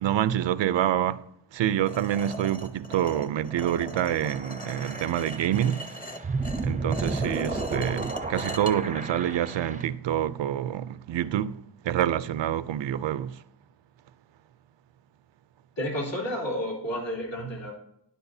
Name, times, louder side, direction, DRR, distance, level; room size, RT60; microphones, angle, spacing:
voice 1, 0.0-1.2 1.5-5.9 6.6-13.4, right 10 dB, 85° right, 0.5 m, -27 dB
sound 1, 1.9-8.7, equal, 20° left, 0.7 m, -39 dB
sound 2, 3.0-9.9, right 3 dB, 20° right, 0.5 m, -34 dB
voice 2, 15.8-17.7, equal, 75° left, 3.4 m, -31 dB
12.0 x 10.5 x 2.7 m
wide cardioid pair, 145°, 44 cm